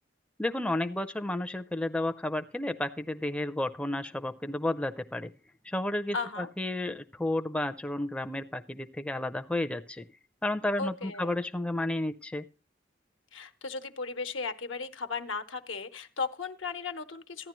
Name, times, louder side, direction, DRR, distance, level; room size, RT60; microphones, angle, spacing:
voice 1, 0.4-5.3 5.6-10.0 10.4-12.4, left 1 dB, 5° left, 7 dB, 0.4 m, -32 dB
voice 2, 6.1-6.5 10.8-11.4 13.3-17.5, left 4 dB, 85° left, 8 dB, 1.0 m, -36 dB
14.0 x 10.0 x 3.0 m, 0.31 s
head